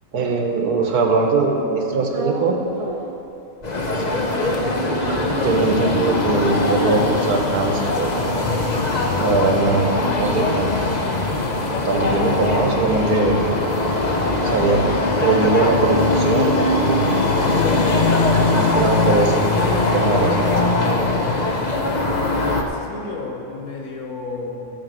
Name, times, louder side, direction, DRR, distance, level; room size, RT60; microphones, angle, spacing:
voice 1, 0.1-2.6 5.4-8.4 9.2-9.9 10.2-11.0 11.9-13.6 14.4-14.8 15.2-17.4 18.5-20.6, right 3 dB, 85° right, 2 dB, 1.6 m, -21 dB
sound 1, 2.1-3.3 3.6-6.2 6.6-6.7 6.9-11.4 11.7-15.7, right 3 dB, 55° right, 0.4 m, -35 dB
sound 2, 3.6-22.6, left 2 dB, 40° left, 0.7 m, -21 dB
voice 2, 21.7-24.7, left 3 dB, 75° left, 0 dB, 1.8 m, -32 dB
13.5 x 5.1 x 7.5 m, 2.9 s
omnidirectional pair, 1.6 m